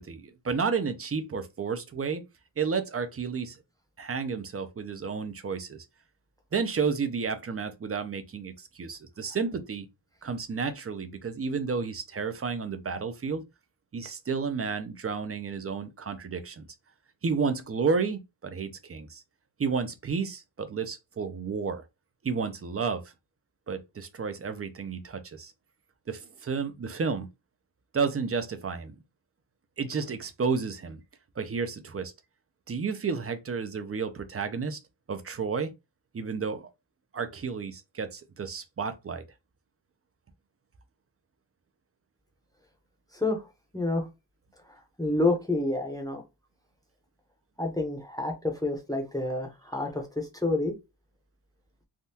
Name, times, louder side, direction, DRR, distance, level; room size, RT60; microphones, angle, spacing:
voice 1, 0.0-2.2 2.6-3.6 4.0-5.8 6.5-9.9 10.2-13.4 13.9-16.7 17.2-19.2 19.6-21.8 22.2-23.0 23.7-25.5 26.1-27.3 27.9-29.0 29.8-31.0 31.4-32.1 32.7-34.8 35.1-35.7 36.1-36.7 37.1-39.3, right 5 dB, 35° right, 0.4 m, -31 dB
voice 2, 43.7-44.1 45.0-46.2 47.6-50.7, left 2 dB, 10° left, 0.7 m, -28 dB
3.5 x 2.2 x 2.7 m
wide cardioid pair, 125°, 43 cm